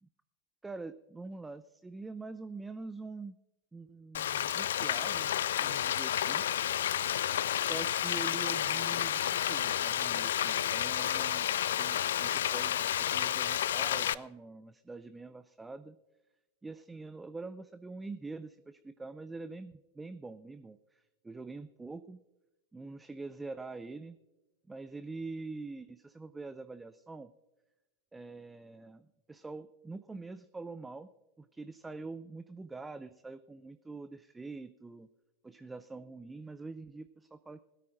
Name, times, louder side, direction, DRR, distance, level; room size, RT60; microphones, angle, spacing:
voice 1, 0.6-3.3 3.7-5.3 5.6-6.5 7.5-9.2 9.5-11.5 11.8-16.0 16.6-22.2 22.7-24.2 24.7-27.3 28.1-31.1 31.4-35.1 35.4-37.6, right 3 dB, 10° right, 12 dB, 0.4 m, -45 dB
Frying (food), 4.1-14.1, left 11 dB, 60° left, 0.3 m, -31 dB
20.5 x 13.0 x 2.6 m, 1.1 s
figure-of-eight pair, 90°, 0 cm